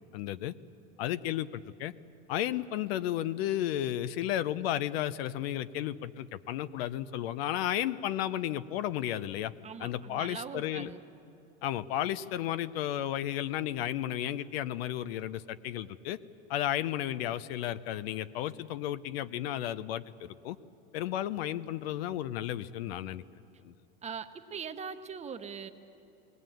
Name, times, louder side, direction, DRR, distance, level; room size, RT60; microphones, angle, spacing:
voice 1, 0.1-0.5 1.0-1.9 2.3-9.5 9.8-10.9 11.6-16.2 16.5-20.6 20.9-23.2 23.6-23.7, left 12 dB, 85° left, 15 dB, 0.8 m, -33 dB
voice 2, 9.6-11.0 24.0-25.7, right 6 dB, 20° right, 8 dB, 1.0 m, -41 dB
20.5 x 20.0 x 9.2 m, 2.7 s
supercardioid pair, 135°, 30 cm